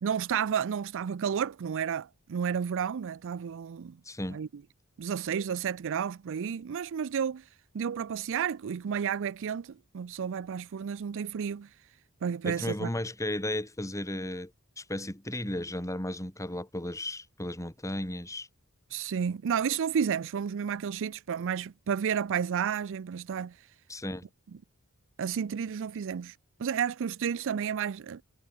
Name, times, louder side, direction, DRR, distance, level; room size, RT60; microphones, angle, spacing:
voice 1, 0.0-4.0 4.3-4.5 5.0-7.4 7.7-11.7 12.2-12.9 18.9-23.6 25.2-28.2, right 7 dB, 60° right, 0.4 m, -31 dB
voice 2, 4.0-4.4 12.4-14.5 14.8-18.5 23.9-24.2, left 1 dB, 15° left, 3.3 m, -34 dB
head